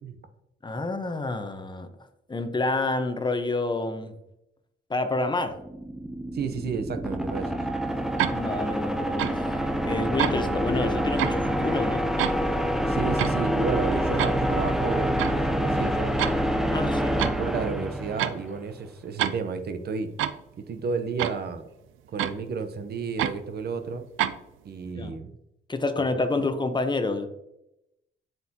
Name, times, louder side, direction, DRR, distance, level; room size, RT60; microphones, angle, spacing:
voice 1, 0.6-1.9 2.3-4.1 4.9-5.6 8.3-12.0 16.7-17.2 24.9-25.2 25.7-27.3, left 2 dB, 20° left, 8 dB, 0.9 m, -28 dB
sound 1, 5.4-18.6, equal, ahead, 0.7 m, -27 dB
voice 2, 6.3-7.6 12.8-16.2 17.1-20.1 20.7-21.6 22.1-24.0 24.6-25.3 26.0-26.1, right 5 dB, 55° right, 8 dB, 0.9 m, -32 dB
sound 2, 8.2-8.4 9.2-9.4 10.2-10.3 11.2-11.4 12.2-12.4 13.2-13.4 14.2-14.3 15.2-15.4 16.2-16.4 17.2-17.4 18.2-18.4 19.2-19.4 20.2-20.4 21.2-21.4 22.2-22.4 23.2-23.4 24.2-24.4, right 12 dB, 85° right, 0.5 m, -27 dB
7.9 x 6.8 x 2.9 m, 0.85 s
cardioid pair, 90°, 20 cm